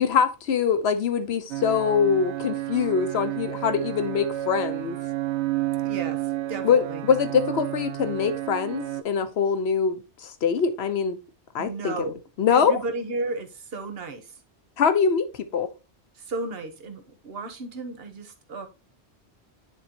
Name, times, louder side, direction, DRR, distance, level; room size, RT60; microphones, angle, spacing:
voice 1, 0.0-5.0 6.6-11.2 11.5-12.1 12.4-12.8 14.8-15.7, left 6 dB, 70° left, 1.1 m, -23 dB
sound 1, 1.5-9.0, right 15 dB, 85° right, 0.9 m, -31 dB
voice 2, 5.8-6.2 6.5-7.0 11.6-12.1 12.5-14.3 16.3-18.7, right 3 dB, 60° right, 1.2 m, -33 dB
10.0 x 3.9 x 2.8 m
omnidirectional pair, 1.1 m